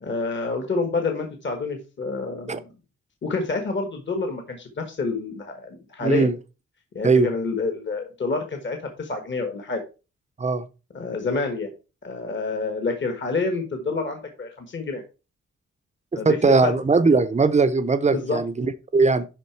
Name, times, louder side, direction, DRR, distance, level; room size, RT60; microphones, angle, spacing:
voice 1, 0.0-2.6 3.2-6.3 6.9-9.8 10.9-11.7 12.0-15.0 16.1-16.7 18.1-18.4, left 3 dB, 40° left, 1.4 m, -28 dB
voice 2, 6.0-6.3 7.0-7.3 10.4-10.7 16.1-19.3, right 4 dB, 25° right, 0.6 m, -20 dB
11.0 x 3.8 x 4.5 m
wide cardioid pair, 150°, 30 cm